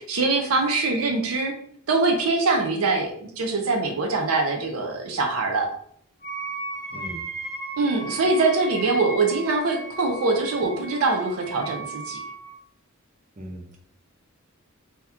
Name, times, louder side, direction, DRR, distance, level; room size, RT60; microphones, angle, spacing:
voice 1, 0.0-1.5 1.9-5.7 7.8-12.2, right 3 dB, 80° right, 3 dB, 0.5 m, -23 dB
Wind instrument woodwind instrument, 6.2-12.5, right 2 dB, 50° left, 0.7 m, -36 dB
voice 2, 13.4-13.8, right 1 dB, 35° right, 0 dB, 0.7 m, -38 dB
2.8 x 2.3 x 3.4 m, 0.65 s
head